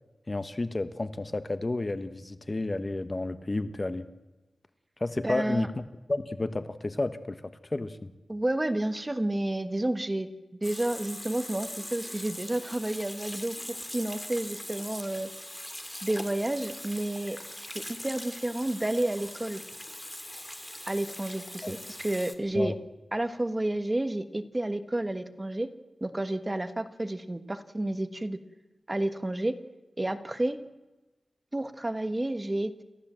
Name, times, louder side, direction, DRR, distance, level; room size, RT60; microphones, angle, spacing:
voice 1, 0.3-4.1 5.0-5.8 6.1-7.4 7.7-8.0 21.6-21.7 22.5-22.7, left 2 dB, 30° left, 11 dB, 1.1 m, -31 dB
voice 2, 5.2-5.7 8.3-10.3 10.6-15.3 16.0-17.4 18.0-19.6 20.9-22.7 23.1-25.7 26.0-28.4 28.9-29.6 30.0-30.6 31.5-32.8, right 1 dB, 20° right, 10 dB, 1.4 m, -30 dB
Water tap faucet / Sink (filling or washing), 10.6-22.3, left 1 dB, 10° left, 2.3 m, -41 dB
29.0 x 14.5 x 7.6 m, 1.1 s
wide cardioid pair, 90°, 0 cm